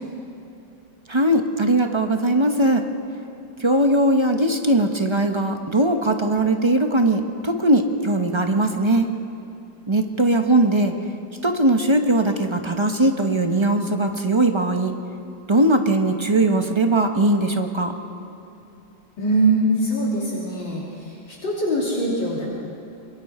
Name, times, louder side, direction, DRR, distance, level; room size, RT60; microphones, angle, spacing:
voice 1, 1.1-2.8 3.6-9.1 9.9-10.9 11.4-14.9 15.5-17.9, right 1 dB, 25° right, 5 dB, 0.6 m, -20 dB
voice 2, 19.2-22.5, right 1 dB, 65° left, -5 dB, 3.5 m, -22 dB
26.5 x 22.0 x 4.4 m, 2.8 s
omnidirectional pair, 2.2 m